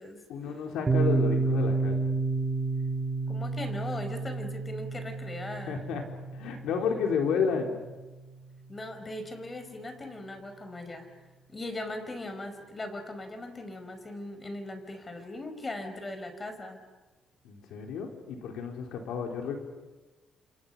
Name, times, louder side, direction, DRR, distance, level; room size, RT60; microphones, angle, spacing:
voice 1, 0.3-2.1 5.7-6.0 6.3-7.8 17.4-19.6, left 6 dB, 85° left, 3 dB, 4.1 m, -31 dB
Piano, 0.9-8.3, right 4 dB, 25° right, 2.8 m, -30 dB
voice 2, 3.3-5.8 8.7-11.1 11.5-16.8, left 1 dB, 25° left, 7 dB, 4.9 m, -39 dB
29.5 x 27.0 x 5.7 m, 1.2 s
cardioid pair, 90°, 0 cm